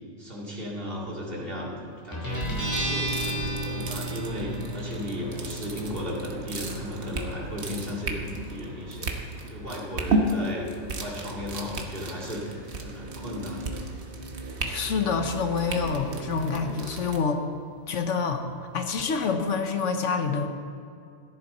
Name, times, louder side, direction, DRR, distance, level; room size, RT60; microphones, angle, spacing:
voice 1, 0.2-2.6 2.8-9.1 9.5-13.9, equal, 50° right, -4 dB, 2.5 m, -35 dB
Guitar, 2.1-19.3, equal, 15° left, 3.6 m, -38 dB
sound 1, 2.3-17.2, right 2 dB, 65° right, 1.4 m, -34 dB
voice 2, 14.6-17.4 17.9-18.4 18.7-20.5, left 5 dB, 80° left, 6 dB, 1.3 m, -27 dB
14.5 x 10.5 x 4.2 m, 2.4 s
omnidirectional pair, 1.2 m